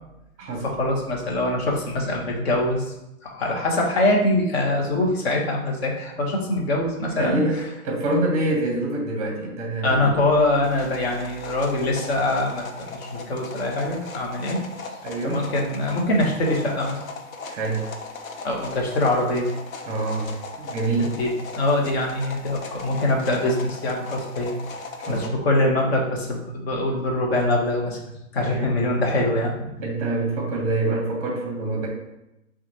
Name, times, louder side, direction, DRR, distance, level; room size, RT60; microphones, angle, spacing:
voice 1, 0.6-2.9 3.2-7.4 9.8-14.6 15.2-17.0 18.4-19.5 21.0-21.3 21.6-24.5 25.1-28.0 28.3-29.7, left 1 dB, 45° left, -1 dB, 1.1 m, -23 dB
voice 2, 7.2-10.1 15.0-15.5 17.5-17.9 19.9-21.1 25.1-25.3 28.4-28.8 29.8-31.9, right 2 dB, 20° right, 0 dB, 0.9 m, -26 dB
sound 1, 10.6-25.3, left 3 dB, 75° left, 0.7 m, -38 dB
5.7 x 2.5 x 2.8 m, 0.90 s
hypercardioid pair, 145°, 41 cm